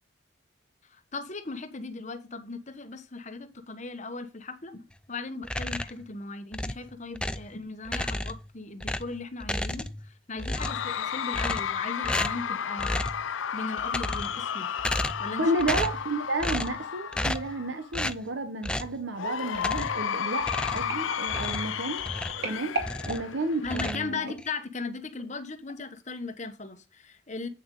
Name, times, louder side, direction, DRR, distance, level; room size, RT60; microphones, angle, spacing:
voice 1, 0.9-13.0 13.5-14.7 15.2-15.4 23.6-27.5, left 3 dB, 35° left, 1.1 m, -38 dB
sound 1, 5.4-6.0 6.5-7.5 7.8-8.5 8.8-10.1 10.4-10.9 11.3-11.8 12.0-12.5 12.8-13.2 13.8-14.4 14.8-15.3 15.6-16.0 16.4-16.8 17.1-17.5 17.9-18.2 18.6-19.0 19.5-20.0 20.4-22.5 22.8-23.3 23.6-24.5, left 1 dB, 5° left, 0.4 m, -32 dB
Cheering / Crowd, 10.6-17.9 19.1-23.9, left 8 dB, 85° left, 0.5 m, -33 dB
voice 2, 15.4-22.0 22.4-22.7 23.0-24.3, right 2 dB, 70° right, 1.0 m, -31 dB
sound 2, 19.6-24.6 25.2-25.4 25.7-25.8, right 2 dB, 55° right, 2.4 m, -39 dB
8.8 x 6.2 x 3.8 m
head